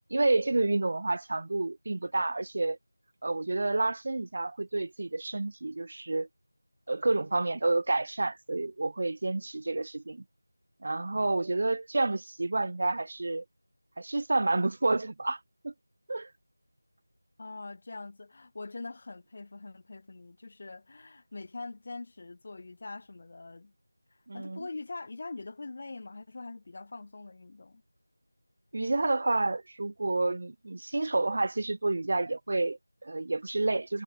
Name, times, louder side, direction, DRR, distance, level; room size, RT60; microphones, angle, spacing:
voice 1, 0.1-2.8 3.2-6.3 6.9-10.2 10.8-13.4 14.0-15.7 16.1-16.3 24.3-24.7 28.7-34.0, right 2 dB, 40° right, 2.5 m, -29 dB
voice 2, 17.4-23.7 24.3-27.8, left 3 dB, 35° left, 4.0 m, -43 dB
figure-of-eight pair, 170°, 0 cm